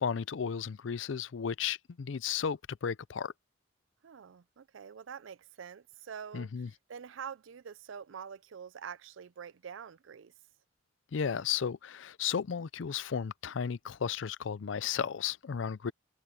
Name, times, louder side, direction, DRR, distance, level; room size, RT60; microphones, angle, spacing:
voice 1, 0.0-3.3 6.3-6.7 11.1-15.9, left 7 dB, 70° left, 0.5 m, -34 dB
voice 2, 4.0-10.3, right 7 dB, 80° right, 0.5 m, -46 dB
head